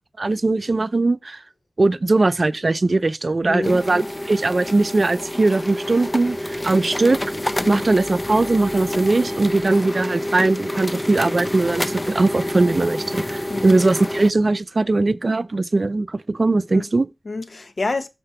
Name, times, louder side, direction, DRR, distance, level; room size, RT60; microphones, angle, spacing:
voice 1, 0.2-1.4 1.8-7.2 7.7-17.1, right 2 dB, 50° right, 0.5 m, -20 dB
voice 2, 3.5-4.1 7.6-7.8 13.5-13.7 16.7-16.8 17.3-18.1, left 3 dB, 60° left, 1.0 m, -28 dB
sound 1, 3.6-14.3, left 1 dB, 20° left, 0.5 m, -28 dB
7.4 x 4.3 x 6.7 m
wide cardioid pair, 75°, 0 cm